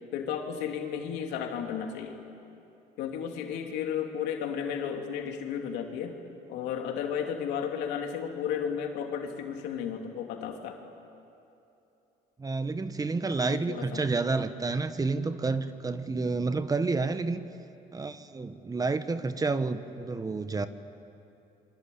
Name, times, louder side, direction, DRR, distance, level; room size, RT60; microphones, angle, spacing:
voice 1, 0.1-2.2 3.0-6.2 6.5-10.8 13.4-14.0, left 8 dB, 90° left, 3 dB, 3.1 m, -33 dB
voice 2, 12.4-17.4 17.9-20.7, right 3 dB, 20° right, 11 dB, 1.2 m, -29 dB
27.5 x 24.0 x 8.6 m, 2.9 s
cardioid pair, 110°, 17 cm